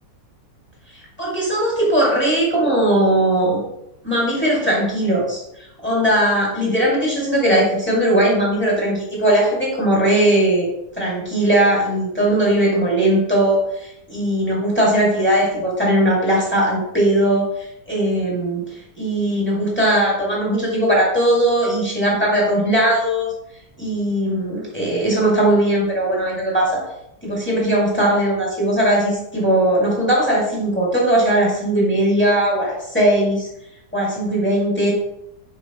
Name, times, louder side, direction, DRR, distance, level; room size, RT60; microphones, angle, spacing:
voice 1, 0.9-3.6 4.0-10.7 11.0-18.6 19.0-23.3 23.8-26.8 27.2-33.5 33.9-34.9, right 1 dB, 5° left, -5 dB, 2.2 m, -19 dB
6.9 x 5.2 x 3.0 m, 0.80 s
omnidirectional pair, 1.9 m